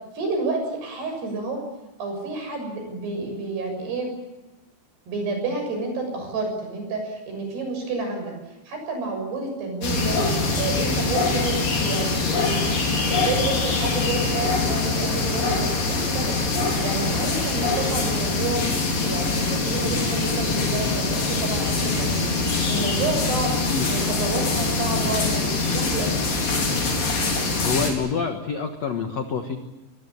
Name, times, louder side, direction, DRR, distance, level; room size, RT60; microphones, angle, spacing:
voice 1, 0.2-1.6 2.0-4.1 5.1-8.4 8.7-10.2 10.6-12.7 13.1-16.4 16.8-18.6 19.0-22.4 22.7-23.6 23.8-26.1, right 3 dB, 55° right, 4 dB, 8.8 m, -29 dB
sound 1, 9.8-27.9, left 3 dB, 45° left, 5.9 m, -23 dB
voice 2, 27.6-29.6, left 5 dB, 85° left, 5 dB, 1.5 m, -27 dB
24.0 x 21.5 x 8.6 m, 1.0 s
omnidirectional pair, 5.5 m